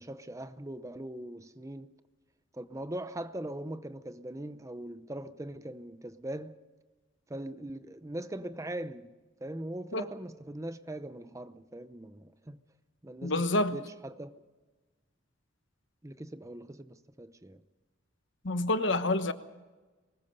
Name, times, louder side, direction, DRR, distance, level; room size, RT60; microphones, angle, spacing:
voice 1, 0.0-2.0 2.5-6.6 7.3-9.1 9.4-12.6 13.0-14.4 16.0-17.6, right 1 dB, 15° right, 0.7 m, -41 dB
voice 2, 13.2-13.8 18.4-19.3, left 2 dB, 65° left, 1.1 m, -27 dB
23.5 x 20.5 x 5.5 m
head